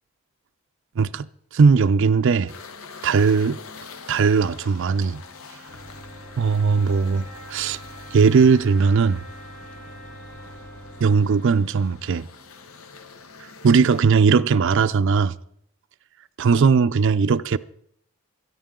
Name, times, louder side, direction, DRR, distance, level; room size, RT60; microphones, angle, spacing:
voice 1, 1.0-1.3 1.5-2.5 3.0-3.6 4.1-5.2 6.4-7.8 8.1-9.2 11.0-12.3 13.6-15.4 16.4-17.6, right 5 dB, 60° right, 0.4 m, -18 dB
sound 1, 2.5-14.0, left 5 dB, 75° left, 1.0 m, -45 dB
sound 2, 3.7-13.1, left 1 dB, 5° left, 6.6 m, -48 dB
sound 3, 5.7-11.3, right 1 dB, 35° left, 2.9 m, -44 dB
23.0 x 9.5 x 3.7 m
head